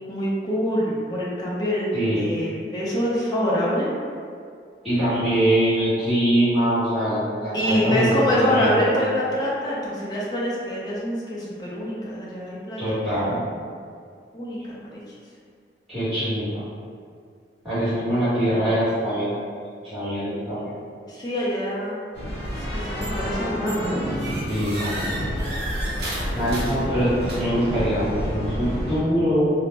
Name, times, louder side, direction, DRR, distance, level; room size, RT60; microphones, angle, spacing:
voice 1, 0.1-3.9 7.5-13.0 14.3-15.0 21.1-22.0 22.7-24.0, equal, 20° left, -6 dB, 0.4 m, -25 dB
voice 2, 1.9-2.3 4.8-9.2 12.8-13.4 15.9-16.5 17.6-19.3 19.8-20.7 24.5-25.0 26.0-29.5, equal, ahead, -15 dB, 1.2 m, -23 dB
sound 1, 22.1-29.0, equal, 60° left, 0.8 m, -29 dB
sound 2, 23.0-23.3 23.7-27.7, right 1 dB, 55° right, 0.7 m, -34 dB
2.4 x 2.0 x 3.1 m, 2.2 s
head